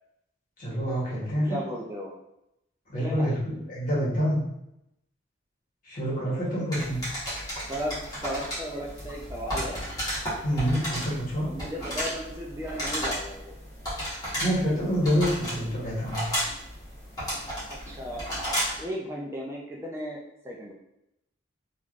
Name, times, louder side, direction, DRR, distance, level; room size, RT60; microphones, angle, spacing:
voice 1, 0.6-1.6 2.9-3.4 3.7-4.4 5.8-7.0 10.4-11.5 14.4-16.2, equal, 45° left, -7 dB, 1.0 m, -27 dB
voice 2, 1.5-2.1 2.9-3.3 7.7-8.0 8.2-9.8 10.7-10.8 11.4-13.5 17.7-18.3 18.8-20.7, equal, 15° right, -2 dB, 0.3 m, -35 dB
sound 1, 6.7-18.9, equal, 20° left, 1.1 m, -33 dB
3.2 x 2.4 x 2.4 m, 0.84 s
head